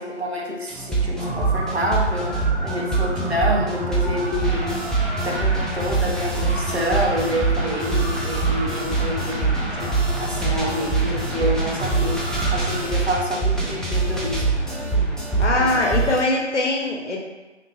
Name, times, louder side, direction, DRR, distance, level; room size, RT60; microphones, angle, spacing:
voice 1, 0.0-2.4 2.6-4.7 5.2-14.6, equal, 60° right, -2 dB, 0.6 m, -27 dB
sound 1, 0.7-16.2, right 3 dB, ahead, 0.3 m, -24 dB
sound 2, 1.1-12.8, right 1 dB, 35° right, 0.9 m, -33 dB
voice 2, 15.4-17.2, left 2 dB, 70° left, -1 dB, 0.6 m, -22 dB
2.6 x 2.2 x 2.9 m, 1.2 s
figure-of-eight pair, 175°, 36 cm